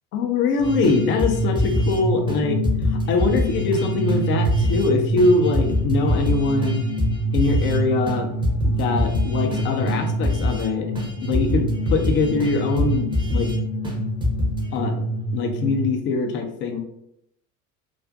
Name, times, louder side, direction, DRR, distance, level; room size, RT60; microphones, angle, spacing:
voice 1, 0.1-2.6 2.9-6.8 7.3-8.3 8.6-10.9 11.2-13.6 14.7-15.0 15.3-16.8, left 3 dB, 30° left, 4 dB, 0.4 m, -22 dB
sound 1, 0.6-15.9, right 1 dB, 65° left, 0.7 m, -26 dB
sound 2, 0.6-2.0 2.3-2.4 2.6-4.9 5.2-7.8 8.1-8.2 8.4-10.7 10.9-13.6 13.8-14.0 14.2-14.8, left 2 dB, 10° right, 0.6 m, -26 dB
2.4 x 2.4 x 2.3 m, 0.75 s
figure-of-eight pair, 65°, 44 cm